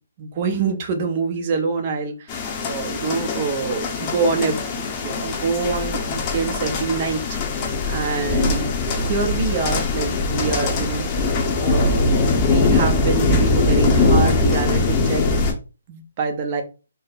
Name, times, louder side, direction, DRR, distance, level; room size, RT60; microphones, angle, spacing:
voice 1, 0.2-7.2 7.5-8.7 9.1-11.1 11.6-15.4 15.9-16.6, right 4 dB, 30° right, 5 dB, 0.8 m, -26 dB
sound 1, 2.3-15.5, left 3 dB, 25° left, 0.8 m, -21 dB
3.9 x 2.1 x 4.0 m, 0.33 s
hypercardioid pair, 165°, 0 cm